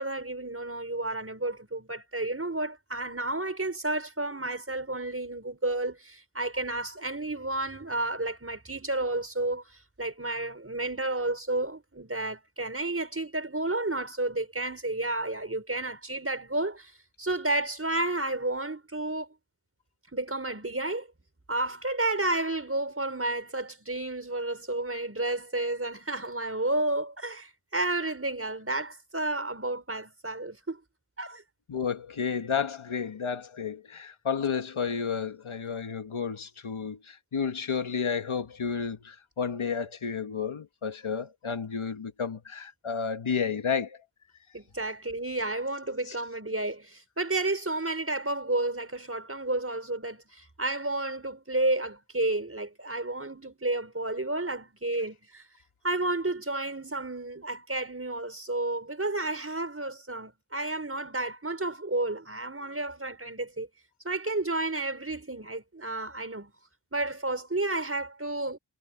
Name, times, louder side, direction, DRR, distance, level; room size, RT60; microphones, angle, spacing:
voice 1, 0.0-9.6 10.0-16.9 17.2-19.3 20.1-21.1 21.5-30.8 31.2-31.4 44.5-55.4 55.8-63.7 64.0-66.5 66.9-68.6, right 2 dB, 30° right, 5.3 m, -31 dB
voice 2, 31.7-44.0 46.1-46.2, left 6 dB, 85° left, 1.8 m, -31 dB
wide cardioid pair, 70°, 48 cm